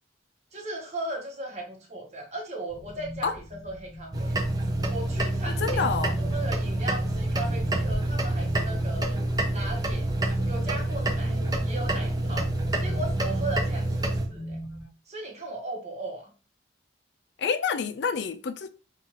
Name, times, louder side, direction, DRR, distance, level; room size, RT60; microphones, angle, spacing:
voice 1, 0.5-4.4 4.9-9.2 9.5-10.1 10.5-12.5 12.8-14.6 15.1-16.3, right 2 dB, 35° right, 1.1 m, -37 dB
sound 1, 2.7-14.8, equal, ahead, 1.7 m, -42 dB
sound 2, 4.1-14.3, right 1 dB, 20° right, 0.5 m, -27 dB
voice 2, 5.5-6.2 17.4-18.7, left 5 dB, 60° left, 0.3 m, -28 dB
4.1 x 2.5 x 3.0 m
head